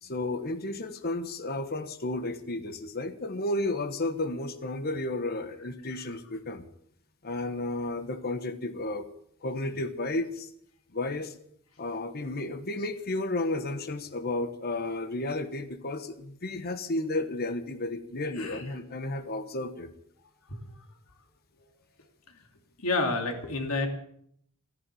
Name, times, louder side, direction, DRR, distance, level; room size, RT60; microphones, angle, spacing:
voice 1, 0.0-6.6 7.2-9.1 9.4-10.5 10.9-11.3 11.8-19.9, left 2 dB, 45° left, 9 dB, 1.2 m, -32 dB
voice 2, 22.8-23.9, left 3 dB, 75° left, 4 dB, 2.9 m, -29 dB
13.5 x 11.0 x 9.2 m, 0.69 s
head